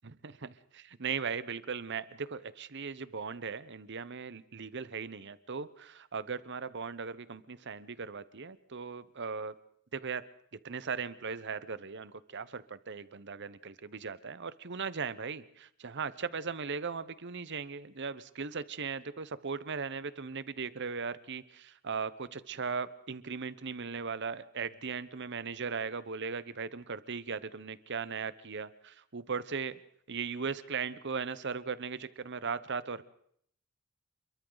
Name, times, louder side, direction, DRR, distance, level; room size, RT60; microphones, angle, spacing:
voice 1, 0.0-9.6 9.9-10.2 10.6-29.8 30.1-33.0, right 5 dB, 55° right, 15 dB, 0.9 m, -38 dB
29.0 x 22.5 x 4.0 m, 0.67 s
head